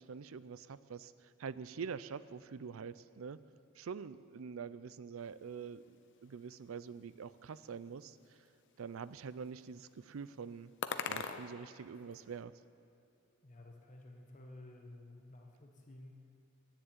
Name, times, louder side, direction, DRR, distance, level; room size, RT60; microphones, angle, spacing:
voice 1, 0.0-3.4 3.8-6.0 6.2-8.4 8.8-10.7 11.1-12.5, right 6 dB, 80° right, 16 dB, 0.5 m, -45 dB
sound 1, 5.2-12.4, left 6 dB, 60° left, 0.7 m, -47 dB
voice 2, 13.4-16.3, left 1 dB, 40° left, 2 dB, 1.1 m, -53 dB
10.5 x 10.0 x 8.9 m, 2.6 s
head